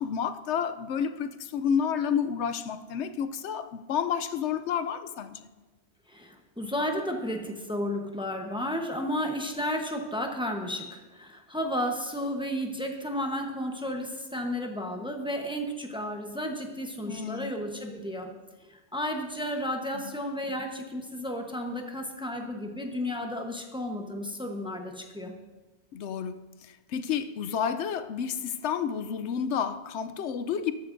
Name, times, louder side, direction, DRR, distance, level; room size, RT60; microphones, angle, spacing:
voice 1, 0.0-5.5 17.1-17.5 19.9-20.1 25.9-30.7, left 7 dB, 85° left, 0.9 m, -30 dB
voice 2, 6.1-18.3 18.6-25.4, equal, 5° right, 0.9 m, -33 dB
13.5 x 12.0 x 2.6 m
omnidirectional pair, 1.1 m